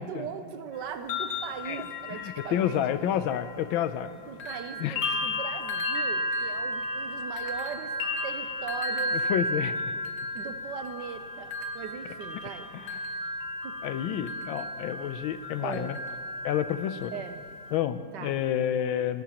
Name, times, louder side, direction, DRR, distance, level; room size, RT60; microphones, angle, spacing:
voice 1, 0.1-2.8 4.2-8.0 8.2-9.2 10.3-13.2 13.6-13.8 15.6-16.0 17.1-17.4 18.1-18.4, right 7 dB, 70° right, 8 dB, 1.2 m, -39 dB
sound 1, 0.8-4.1 4.4-17.8, left 1 dB, 45° left, 0.9 m, -34 dB
voice 2, 2.2-4.1 4.8-5.0 9.1-9.8 12.7-12.8 13.8-16.0 16.4-17.1 17.7-19.2, left 10 dB, 80° left, 12 dB, 1.4 m, -29 dB
20.0 x 16.5 x 2.9 m, 2.3 s
omnidirectional pair, 2.2 m